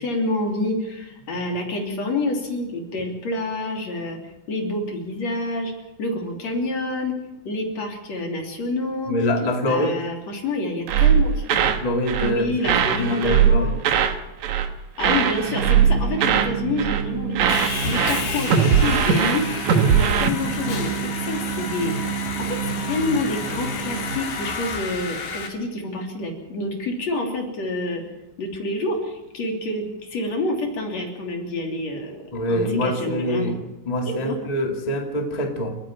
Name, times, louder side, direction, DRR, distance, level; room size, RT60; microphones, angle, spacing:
voice 1, 0.0-4.2 4.5-5.7 6.0-7.2 7.5-9.2 9.7-11.7 12.2-13.7 15.0-28.0 28.4-32.2 32.5-33.5 34.1-34.4, left 2 dB, 40° left, 2 dB, 3.7 m, -28 dB
voice 2, 9.1-10.0 11.8-12.6 12.9-13.7 32.3-33.6 33.8-35.7, left 1 dB, 25° left, 2 dB, 0.9 m, -24 dB
sound 1, 10.9-11.8 12.1-12.4 12.6-14.2 14.4-14.7 15.0-16.5 16.8-17.1 17.3-20.3, right 8 dB, 80° right, 1.6 m, -20 dB
sound 2, 15.4-24.2, right 7 dB, 60° right, 2.2 m, -30 dB
Sawing, 17.5-25.5, left 4 dB, 60° left, 4.5 m, -31 dB
29.5 x 10.0 x 8.8 m, 0.98 s
omnidirectional pair, 5.3 m